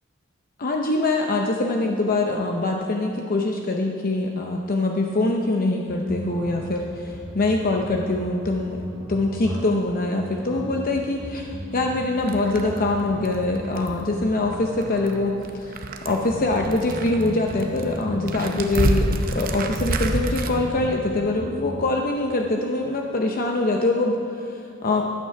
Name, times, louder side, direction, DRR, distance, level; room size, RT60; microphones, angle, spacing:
voice 1, 0.6-8.8 9.1-25.0, left 2 dB, 45° left, 2 dB, 0.7 m, -24 dB
Tokyo - Steel Drums, 5.9-21.8, equal, 15° right, 2.3 m, -36 dB
Rocks Crumbling from room or cave, 12.2-20.5, right 2 dB, 45° right, 0.7 m, -29 dB
11.5 x 9.1 x 5.8 m, 2.6 s
head